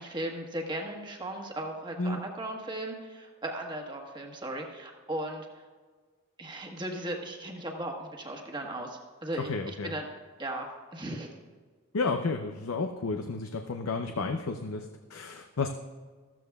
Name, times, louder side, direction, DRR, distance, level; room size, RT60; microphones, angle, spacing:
voice 1, 0.0-5.6 6.4-10.1 10.4-11.3, right 1 dB, 20° right, 1 dB, 1.3 m, -37 dB
voice 2, 9.4-9.9 11.9-15.7, left 3 dB, 90° left, 5 dB, 0.6 m, -32 dB
14.0 x 13.5 x 2.4 m, 1.5 s
head